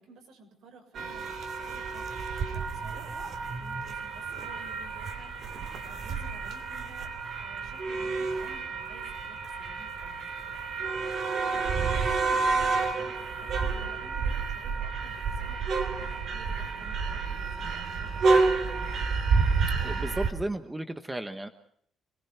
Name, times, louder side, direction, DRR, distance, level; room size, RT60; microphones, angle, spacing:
voice 1, 0.0-10.4 10.9-18.9, right 3 dB, 65° right, 4 dB, 6.5 m, -53 dB
sound 1, 0.9-20.3, right 4 dB, 45° right, 3.2 m, -30 dB
voice 2, 19.8-21.5, right 1 dB, 10° right, 8 dB, 1.1 m, -34 dB
27.0 x 20.0 x 5.7 m, 0.66 s
cardioid pair, 175°, 0 cm